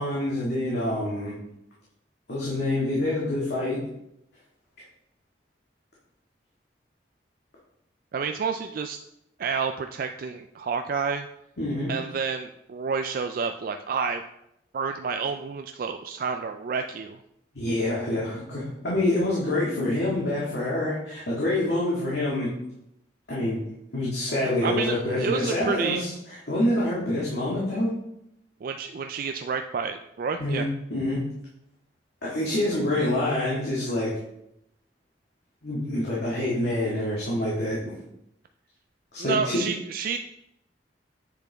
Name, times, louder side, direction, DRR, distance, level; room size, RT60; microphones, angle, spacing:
voice 1, 0.0-1.3 2.3-3.8 11.6-11.9 17.6-22.5 23.3-23.6 23.9-26.1 26.5-28.0 30.4-31.2 32.2-34.1 35.6-38.0 39.1-39.6, left 1 dB, 70° left, -7 dB, 1.9 m, -26 dB
voice 2, 8.1-9.0 9.4-11.3 11.9-14.2 14.7-17.2 24.6-26.0 28.6-30.7 39.2-40.2, right 5 dB, 55° right, 6 dB, 0.3 m, -29 dB
8.1 x 6.7 x 3.5 m, 0.82 s
head